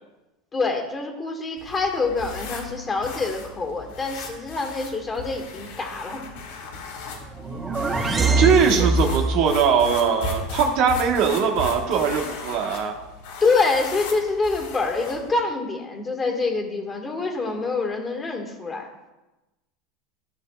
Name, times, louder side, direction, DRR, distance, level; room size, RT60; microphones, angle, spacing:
voice 1, 0.5-6.2 8.8-8.9 13.4-18.9, left 3 dB, 20° left, 2 dB, 1.8 m, -26 dB
sound 1, 1.6-15.3, left 3 dB, 75° left, 2.6 m, -36 dB
sound 2, 7.2-9.5, right 2 dB, 20° right, 0.9 m, -23 dB
voice 2, 8.4-12.9, right 6 dB, 60° right, 2 dB, 1.4 m, -20 dB
14.0 x 6.2 x 2.5 m, 1.1 s
supercardioid pair, 110°, 0 cm